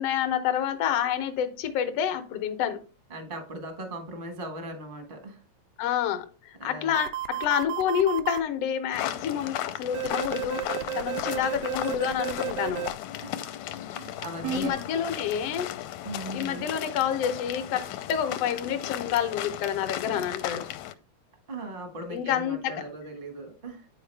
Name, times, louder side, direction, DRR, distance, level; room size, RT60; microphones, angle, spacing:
voice 1, 0.0-2.8 5.8-10.6 10.9-12.9 14.5-15.8 16.3-20.7 22.1-22.8, left 9 dB, 70° left, 1.6 m, -28 dB
voice 2, 3.1-5.4 6.6-7.0 13.2-13.4 13.9-14.7 16.0-16.7 21.5-23.9, right 1 dB, 45° right, 0.6 m, -38 dB
sound 1, 6.9-8.4 9.9-12.9 14.4-14.7, right 14 dB, 90° right, 1.4 m, -32 dB
sound 2, 8.9-20.9, left 12 dB, 85° left, 1.9 m, -35 dB
9.4 x 4.7 x 3.3 m
omnidirectional pair, 3.4 m